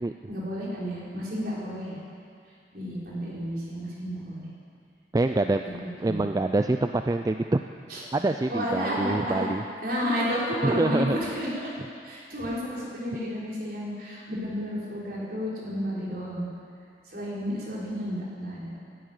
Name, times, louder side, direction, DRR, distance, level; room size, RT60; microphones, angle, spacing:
voice 1, 0.3-2.0 2.7-4.5 5.7-6.2 7.9-8.0 8.5-9.5 9.8-11.7 12.0-16.5 17.1-18.7, equal, 55° right, -6 dB, 4.5 m, -31 dB
voice 2, 5.1-5.6 6.0-7.4 8.1-9.6 10.6-11.2, right 2 dB, 20° right, 7 dB, 0.3 m, -25 dB
12.0 x 11.5 x 9.3 m, 2.3 s
head